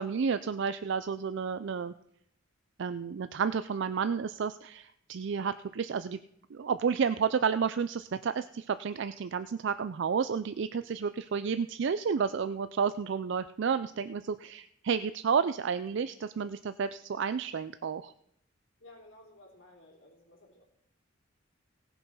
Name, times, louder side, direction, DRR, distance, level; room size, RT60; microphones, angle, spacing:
voice 1, 0.0-1.9 2.8-6.2 6.5-18.1, right 6 dB, 65° right, 12 dB, 0.4 m, -31 dB
voice 2, 18.8-20.6, left 1 dB, 70° left, -6 dB, 3.4 m, -55 dB
17.5 x 6.9 x 5.5 m, 0.72 s
head